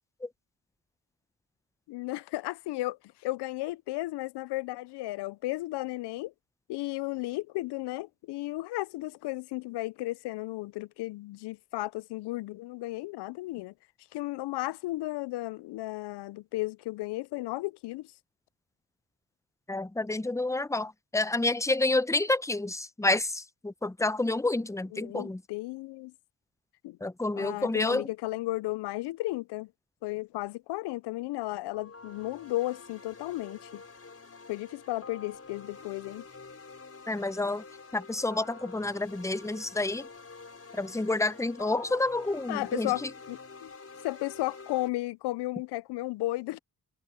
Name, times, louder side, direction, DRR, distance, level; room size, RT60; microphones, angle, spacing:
voice 1, 1.9-6.3 6.7-13.7 14.1-18.1 24.9-26.1 26.8-27.0 27.4-29.7 30.0-33.8 34.5-36.2 42.5-43.7 44.0-46.6, left 18 dB, 90° left, 0.5 m, -34 dB
voice 2, 19.7-25.4 27.0-28.1 37.1-37.6 37.9-40.1 40.8-43.1, left 2 dB, 10° left, 0.8 m, -29 dB
sound 1, 31.7-44.9, left 4 dB, 35° left, 5.1 m, -48 dB
supercardioid pair, 55°, 39 cm